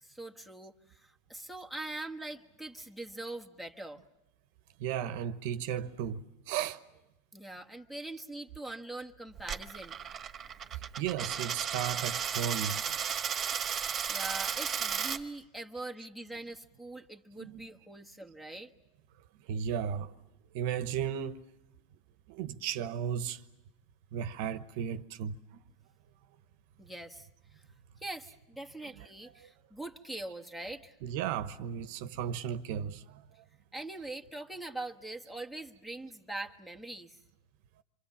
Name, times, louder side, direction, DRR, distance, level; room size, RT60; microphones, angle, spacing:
voice 1, 0.0-4.0 7.3-10.0 14.1-18.7 26.8-27.6 28.0-31.0 33.7-37.2, right 2 dB, 5° left, 1.3 m, -43 dB
voice 2, 4.8-6.8 11.0-12.8 17.4-17.7 19.5-20.1 20.5-21.4 22.3-23.4 24.1-25.6 29.4-29.5 31.0-33.2, right 9 dB, 65° right, 1.0 m, -35 dB
Coin (dropping), 9.4-15.2, right 7 dB, 25° right, 1.4 m, -34 dB
28.0 x 24.0 x 7.2 m
supercardioid pair, 130°, 0 cm